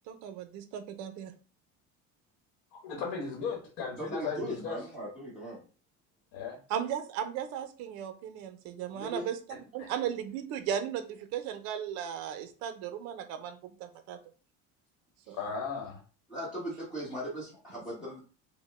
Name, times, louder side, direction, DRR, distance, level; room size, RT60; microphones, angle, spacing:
voice 1, 0.1-1.3 6.7-14.2 15.3-15.4, right 9 dB, 60° right, 9 dB, 0.7 m, -36 dB
voice 2, 2.8-4.8 6.3-6.6 9.8-9.9 15.3-16.0, left 5 dB, 85° left, -1 dB, 1.3 m, -36 dB
voice 3, 4.0-5.6 8.9-9.3 15.3-15.4 16.3-18.2, equal, 5° right, -8 dB, 1.2 m, -38 dB
5.1 x 2.1 x 3.4 m, 0.37 s
cardioid pair, 175°, 30 cm